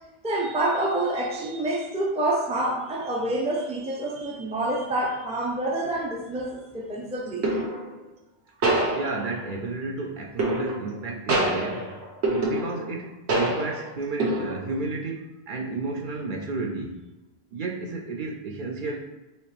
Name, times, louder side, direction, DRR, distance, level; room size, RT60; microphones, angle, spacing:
voice 1, 0.2-7.4, right 1 dB, 10° right, 0 dB, 0.4 m, -27 dB
sound 1, 5.8-6.1 7.4-7.9 8.6-9.5 10.4-11.0 11.3-13.0 13.3-13.9 14.2-14.8, right 2 dB, 85° right, 1.2 m, -26 dB
voice 2, 8.9-12.0 12.3-17.0 17.5-19.1, right 3 dB, 60° right, 1 dB, 0.6 m, -32 dB
4.3 x 2.9 x 3.2 m, 1.1 s
omnidirectional pair, 1.1 m